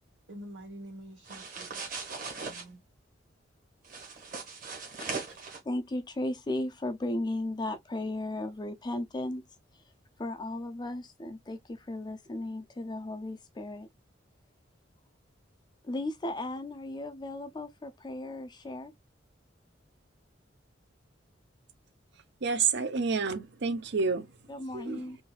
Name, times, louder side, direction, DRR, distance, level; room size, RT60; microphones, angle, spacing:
voice 1, 0.3-2.0 2.4-2.8, equal, 80° right, 1.2 m, -47 dB
sound 1, 1.2-2.6 3.8-5.6, right 4 dB, 45° right, 1.5 m, -39 dB
voice 2, 5.6-9.4 9.7-9.9 10.2-13.9 15.8-18.9 24.5-25.2, left 1 dB, 25° left, 0.4 m, -35 dB
voice 3, 22.1-25.1, right 5 dB, 65° right, 0.6 m, -30 dB
3.8 x 2.6 x 2.3 m
head